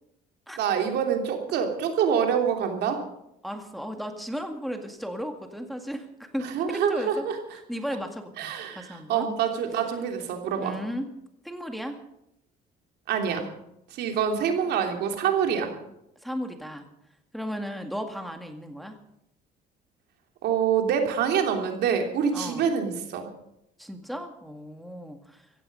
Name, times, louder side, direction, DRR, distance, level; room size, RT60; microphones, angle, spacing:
voice 1, 0.6-3.0 6.4-7.4 8.4-10.8 13.1-13.5 13.9-15.7 20.4-23.3, right 7 dB, 75° right, 4 dB, 3.2 m, -26 dB
voice 2, 3.4-7.3 7.7-9.3 10.6-11.1 11.4-12.0 14.7-14.8 16.2-16.9 17.3-19.0 22.3-22.7 23.8-25.5, equal, ahead, 5 dB, 2.0 m, -35 dB
16.0 x 15.0 x 5.5 m, 0.80 s
cardioid pair, 110°, 17 cm